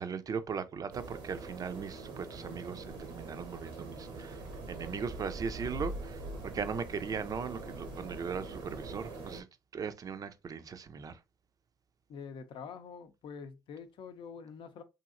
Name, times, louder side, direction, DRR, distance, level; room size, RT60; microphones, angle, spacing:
voice 1, 0.0-6.2 6.5-9.5 9.7-11.2, right 6 dB, 40° right, 0.5 m, -38 dB
sound 1, 0.9-9.4, right 2 dB, 90° right, 0.9 m, -43 dB
voice 2, 12.1-14.8, left 6 dB, 55° left, 0.6 m, -46 dB
2.9 x 2.7 x 2.5 m
hypercardioid pair, 65°, 10 cm